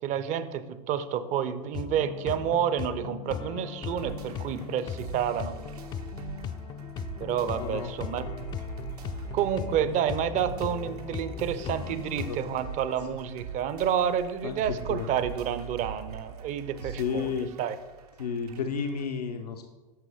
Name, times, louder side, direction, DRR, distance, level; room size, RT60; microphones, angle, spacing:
voice 1, 0.0-5.5 7.2-8.4 9.3-17.3 17.6-17.8, right 9 dB, 40° right, 12 dB, 0.6 m, -29 dB
sound 1, 1.7-12.3, left 8 dB, 25° left, 0.3 m, -38 dB
sound 2, 3.9-19.0, right 6 dB, 80° right, 0.9 m, -43 dB
voice 2, 7.6-7.9 12.2-12.5 14.4-14.6 14.9-15.1 16.8-17.5 18.2-19.6, left 6 dB, 85° left, 5 dB, 0.6 m, -32 dB
9.0 x 6.1 x 3.5 m, 1.2 s
hypercardioid pair, 90°, 20 cm